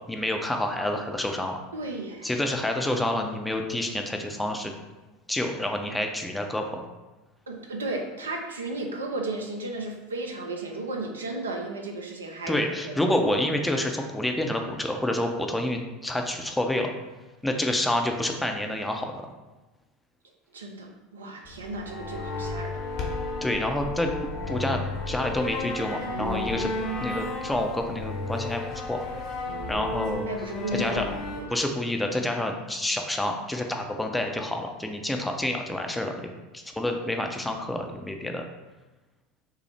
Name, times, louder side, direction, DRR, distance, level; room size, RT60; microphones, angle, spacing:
voice 1, 0.1-1.6 2.2-4.7 5.3-6.8 12.5-16.9 17.4-19.1 23.4-24.1 24.5-26.7 27.0-28.6 28.9-29.0 29.7-30.3 30.7-31.1 31.5-36.2 36.5-38.4, left 1 dB, 5° left, 3 dB, 0.5 m, -28 dB
voice 2, 1.7-2.3 7.5-12.6 12.8-13.2 20.5-22.8 29.5-29.9 30.3-31.6, right 2 dB, 80° right, 2 dB, 0.5 m, -34 dB
sound 1, 21.4-31.4, left 2 dB, 55° left, 0.9 m, -33 dB
5.6 x 2.0 x 3.3 m, 1.1 s
figure-of-eight pair, 75°, 0 cm